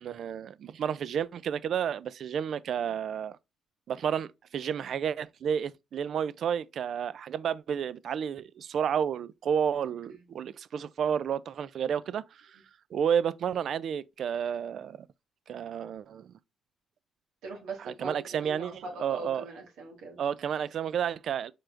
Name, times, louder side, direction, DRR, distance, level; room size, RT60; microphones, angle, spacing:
voice 1, 0.0-3.4 3.9-12.6 12.9-15.1 15.5-16.3 17.8-19.4 20.2-21.5, right 8 dB, 65° right, 0.3 m, -31 dB
voice 2, 17.4-20.2, right 3 dB, 90° right, 1.9 m, -41 dB
4.6 x 4.5 x 2.5 m
cardioid pair, 90°, 0 cm